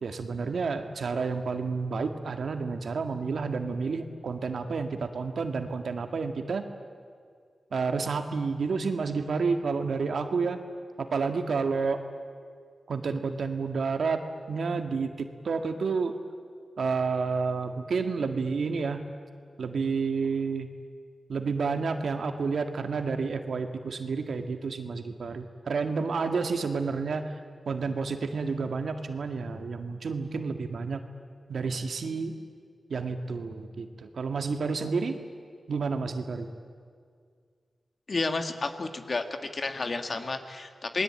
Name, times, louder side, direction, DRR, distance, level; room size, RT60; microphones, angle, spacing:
voice 1, 0.0-6.7 7.7-10.6 11.0-12.0 12.9-15.1 15.4-16.2 16.8-19.0 19.6-20.7 21.3-27.4 27.7-31.0 31.5-32.3 32.9-35.2 35.7-36.5, right 4 dB, 75° right, 7 dB, 1.9 m, -30 dB
voice 2, 38.1-39.2 39.5-41.0, left 3 dB, 45° left, 7 dB, 1.9 m, -31 dB
27.5 x 20.5 x 8.9 m, 2.1 s
wide cardioid pair, 95°, 0 cm